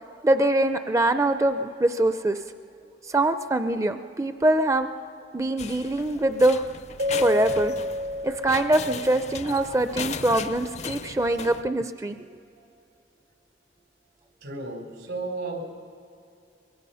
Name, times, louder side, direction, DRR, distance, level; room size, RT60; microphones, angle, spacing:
voice 1, 0.2-2.4 3.0-4.9 5.3-6.6 7.2-7.7 8.2-12.2, right 1 dB, 15° right, 9 dB, 0.5 m, -23 dB
sound 1, 5.6-11.6, left 6 dB, 40° left, 0.5 m, -37 dB
Keyboard (musical), 7.0-9.4, left 1 dB, 60° right, 0.7 m, -29 dB
voice 2, 14.4-15.6, right 3 dB, 85° right, 2 dB, 3.7 m, -33 dB
24.0 x 22.0 x 5.6 m, 2.6 s
head